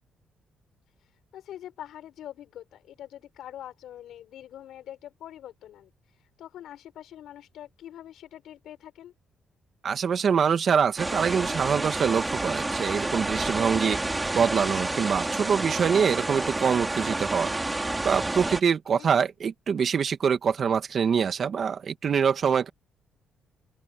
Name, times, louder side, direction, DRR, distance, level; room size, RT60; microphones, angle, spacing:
voice 1, 1.0-9.1 18.9-19.1, left 11 dB, 75° left, 6.0 m, -44 dB
voice 2, 9.8-14.0 14.3-17.5 18.0-22.7, right 7 dB, 50° right, 2.1 m, -24 dB
sound 1, 11.0-18.6, right 2 dB, 15° right, 3.7 m, -29 dB
open air
cardioid pair, 90°, 0 cm